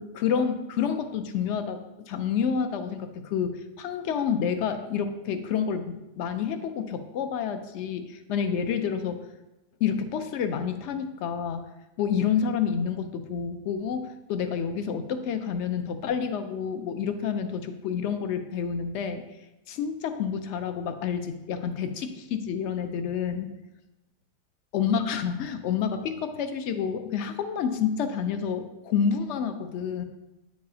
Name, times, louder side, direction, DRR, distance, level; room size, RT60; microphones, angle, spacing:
voice 1, 0.0-9.2 9.8-11.6 12.0-19.2 19.7-23.5 24.7-30.0, left 7 dB, 70° left, 8 dB, 0.7 m, -29 dB
9.1 x 4.8 x 2.7 m, 0.98 s
omnidirectional pair, 1.6 m